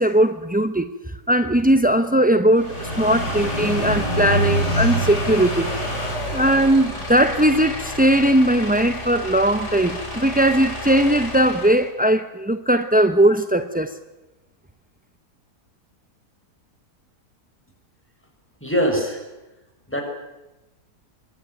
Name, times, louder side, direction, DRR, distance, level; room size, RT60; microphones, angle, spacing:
voice 1, 0.0-5.7 6.3-13.9, right 1 dB, 10° right, 0.5 m, -19 dB
sound 1, 2.2-6.1, right 1 dB, 75° left, 5.9 m, -26 dB
sound 2, 2.5-11.9, left 1 dB, 45° left, 5.9 m, -30 dB
voice 2, 18.6-19.3 19.9-20.0, equal, 5° left, 6.0 m, -22 dB
24.5 x 23.0 x 9.3 m
omnidirectional pair, 1.7 m